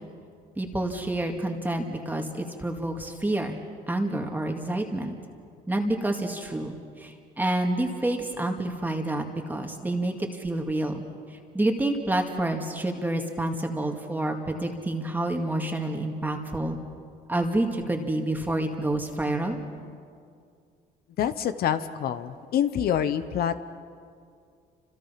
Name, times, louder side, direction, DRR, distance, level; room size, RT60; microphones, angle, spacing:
voice 1, 0.6-3.6 3.9-5.1 5.7-11.0 11.3-16.8 17.3-19.6, right 1 dB, 10° right, 2 dB, 2.1 m, -28 dB
voice 2, 21.2-23.5, left 9 dB, 65° left, 11 dB, 1.0 m, -26 dB
29.5 x 27.0 x 5.9 m, 2.3 s
cardioid pair, 110°, 17 cm